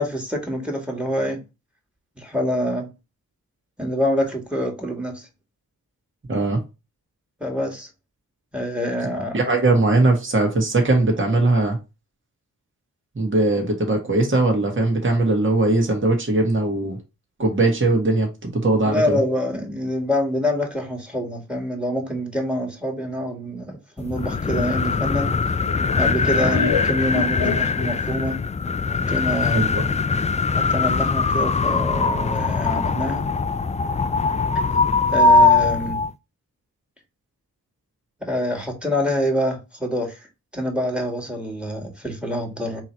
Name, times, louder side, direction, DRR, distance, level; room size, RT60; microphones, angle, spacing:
voice 1, 0.0-1.4 2.2-2.9 3.8-5.3 7.4-7.9 8.5-9.4 18.8-25.4 26.0-28.4 28.9-29.6 30.7-33.2 35.1-36.0 38.2-40.2 40.5-42.8, left 1 dB, 5° right, 1.9 m, -26 dB
voice 2, 6.3-6.6 9.3-11.8 13.1-17.0 17.4-19.2 26.4-26.6 29.5-29.8, right 2 dB, 35° right, 1.6 m, -20 dB
sound 1, 24.0-36.1, left 4 dB, 20° left, 0.3 m, -21 dB
Laughter, 24.6-28.2, left 7 dB, 85° left, 0.8 m, -30 dB
3.7 x 2.9 x 4.4 m
cardioid pair, 45°, 36 cm